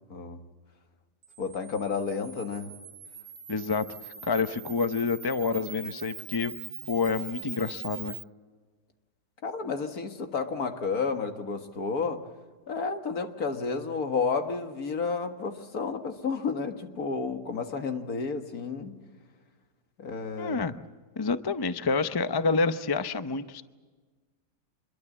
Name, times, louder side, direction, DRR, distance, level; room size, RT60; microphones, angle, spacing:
Camera, 1.2-8.2, right 7 dB, 70° right, 1.8 m, -43 dB
voice 1, 1.4-2.7 9.4-12.2 12.7-18.9 20.0-20.6, left 5 dB, 60° left, 6 dB, 2.1 m, -31 dB
voice 2, 3.5-3.8 4.2-6.5 6.9-8.1 20.4-20.7 21.2-23.6, left 4 dB, 40° left, 11 dB, 0.3 m, -28 dB
26.5 x 22.0 x 7.4 m, 1.4 s
omnidirectional pair, 1.8 m